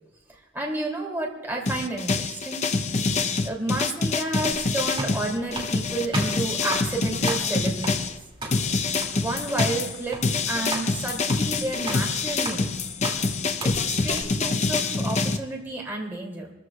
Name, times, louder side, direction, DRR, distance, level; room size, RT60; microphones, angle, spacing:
voice 1, 0.3-2.7 3.4-8.2 9.1-12.7 13.6-16.5, right 2 dB, 10° right, -2 dB, 2.5 m, -31 dB
sound 1, 1.7-8.1 8.5-15.4, left 4 dB, 35° left, 0.6 m, -26 dB
sound 2, 4.5-14.2, right 2 dB, 25° right, 2.3 m, -36 dB
26.0 x 14.0 x 2.3 m, 1.0 s
head